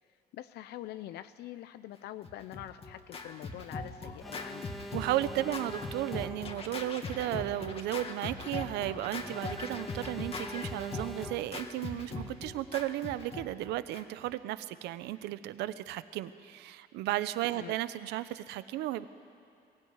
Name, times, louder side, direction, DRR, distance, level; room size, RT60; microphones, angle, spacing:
voice 1, 0.3-4.8 5.4-5.5 17.5-17.8, left 13 dB, 75° left, 12 dB, 0.6 m, -45 dB
Scratching (performance technique), 2.2-14.3, left 3 dB, 35° left, 1.9 m, -41 dB
Alarm, 4.2-6.7 9.2-11.7, equal, ahead, 0.6 m, -44 dB
voice 2, 4.9-19.1, right 14 dB, 85° right, 14 dB, 0.8 m, -34 dB
22.5 x 16.0 x 9.6 m, 2.4 s
cardioid pair, 110°, 17 cm